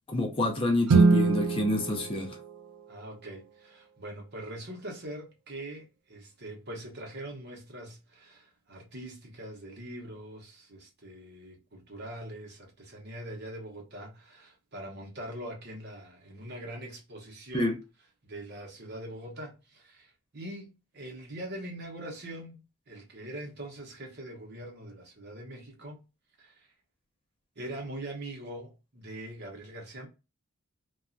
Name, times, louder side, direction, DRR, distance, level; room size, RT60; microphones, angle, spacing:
voice 1, 0.1-2.3 17.5-17.7, left 1 dB, 25° left, 0.5 m, -27 dB
Guitar, 0.9-3.4, right 4 dB, 85° right, 0.4 m, -25 dB
voice 2, 2.9-17.8 18.2-22.6 22.9-26.0 26.4-26.7 27.6-30.1, right 1 dB, 45° right, 0.8 m, -42 dB
2.9 x 2.3 x 2.5 m
head